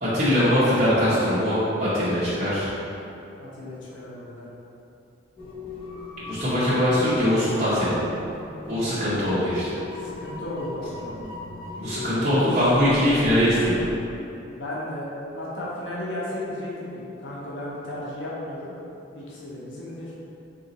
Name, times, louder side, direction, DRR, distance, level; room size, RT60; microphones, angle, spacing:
voice 1, 0.0-2.7 6.2-7.9 8.7-9.8 11.8-13.9, equal, 40° right, -13 dB, 1.0 m, -22 dB
voice 2, 3.4-4.5 10.0-11.2 12.2-12.6 14.5-18.7 19.1-20.1, left 1 dB, 70° left, -6 dB, 0.8 m, -34 dB
sound 1, 5.4-13.9, left 3 dB, 30° left, 0.9 m, -38 dB
3.8 x 2.8 x 4.0 m, 2.8 s
head